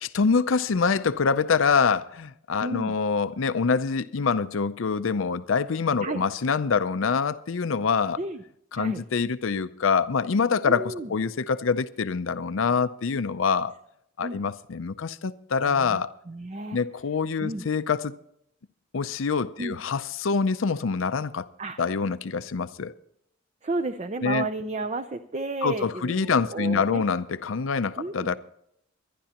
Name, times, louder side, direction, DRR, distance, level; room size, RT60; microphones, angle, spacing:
voice 1, 0.0-8.2 8.7-13.7 14.2-16.1 16.7-18.1 18.9-21.5 21.8-22.9 24.2-24.5 25.6-28.4, left 5 dB, 75° left, 0.5 m, -25 dB
voice 2, 2.6-3.0 6.0-6.2 8.2-8.4 8.7-9.0 10.7-11.1 14.2-14.4 15.6-16.0 16.3-16.8 17.4-17.6 19.6-19.8 21.6-21.8 23.6-27.0 28.0-28.3, right 2 dB, 35° right, 0.6 m, -32 dB
23.5 x 11.0 x 2.9 m
head